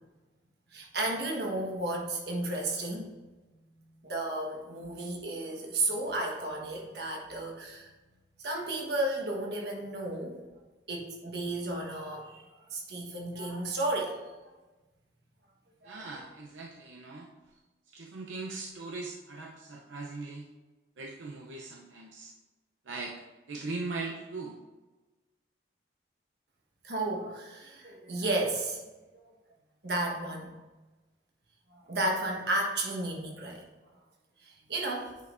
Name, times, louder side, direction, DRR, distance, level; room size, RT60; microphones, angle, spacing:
voice 1, 0.7-3.1 4.0-7.9 8.4-10.4 10.9-12.4 12.7-14.2 15.8-16.0 26.8-28.8 29.8-30.5 31.8-33.6 34.4-35.1, right 2 dB, 60° right, 0 dB, 1.3 m, -33 dB
voice 2, 15.8-17.3 17.9-20.5 21.0-22.3 22.9-23.2 23.5-24.6, right 3 dB, 85° right, 0 dB, 0.7 m, -40 dB
9.1 x 5.4 x 2.6 m, 1.2 s
head